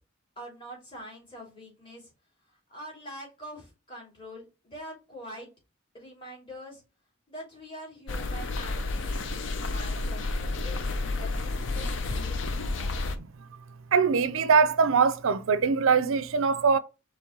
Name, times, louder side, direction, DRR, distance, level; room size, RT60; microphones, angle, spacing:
voice 1, 0.4-2.1 2.7-5.5 5.9-6.8 7.3-13.2, equal, 25° left, 2.8 m, -45 dB
sound 1, 8.1-13.2, left 2 dB, 60° left, 0.6 m, -31 dB
voice 2, 13.9-16.8, right 5 dB, 70° right, 0.4 m, -22 dB
4.6 x 3.1 x 3.7 m
head